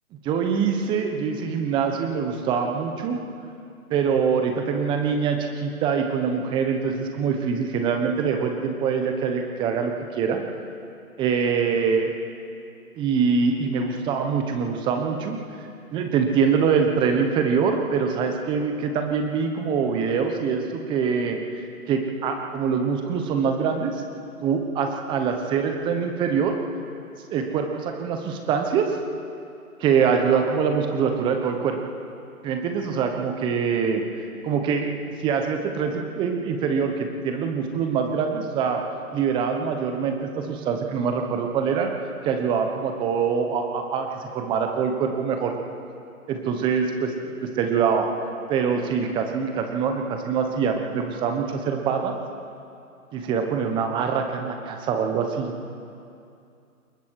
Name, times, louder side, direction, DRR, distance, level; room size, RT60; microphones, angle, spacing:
voice 1, 0.3-3.2 3.9-10.4 11.2-12.1 13.0-15.4 15.9-24.0 24.4-26.5 27.3-28.9 29.8-31.8 32.4-34.0 34.4-34.9 35.2-38.8 39.1-41.9 42.2-45.5 46.3-48.1 48.5-52.1 53.1-55.5, right 6 dB, 10° right, 4 dB, 1.1 m, -24 dB
27.5 x 21.5 x 4.8 m, 2.6 s
hypercardioid pair, 145°, 44 cm